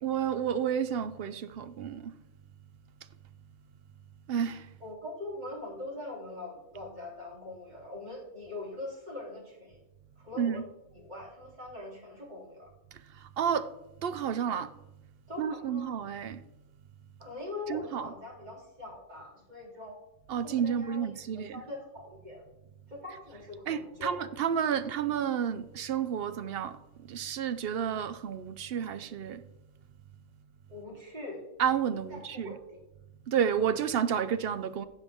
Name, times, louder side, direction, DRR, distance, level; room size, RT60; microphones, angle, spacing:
voice 1, 0.0-2.1 4.3-4.6 10.4-10.6 13.4-13.7 14.0-14.7 15.4-16.4 17.7-18.1 20.3-21.5 23.7-26.8 27.1-29.4 31.6-32.5 33.3-34.9, right 8 dB, 65° right, 0.6 m, -30 dB
voice 2, 4.8-9.8 10.2-10.6 10.9-12.7 15.3-15.9 17.2-19.9 20.4-22.4 22.9-24.2 24.7-24.8 30.7-31.5 32.1-32.8, left 2 dB, 30° right, 3.3 m, -42 dB
16.0 x 5.6 x 3.5 m
omnidirectional pair, 1.4 m